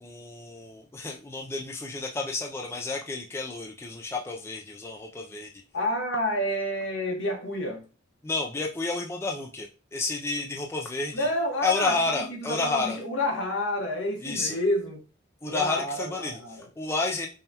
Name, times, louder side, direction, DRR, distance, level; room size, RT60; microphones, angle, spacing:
voice 1, 0.0-5.5 8.2-11.3 11.6-13.0 14.2-14.6 15.4-17.3, left 3 dB, 15° left, 0.3 m, -30 dB
voice 2, 5.7-7.8 11.1-15.0 15.4-16.7, left 1 dB, 65° left, 1.2 m, -29 dB
5.4 x 2.2 x 2.7 m
head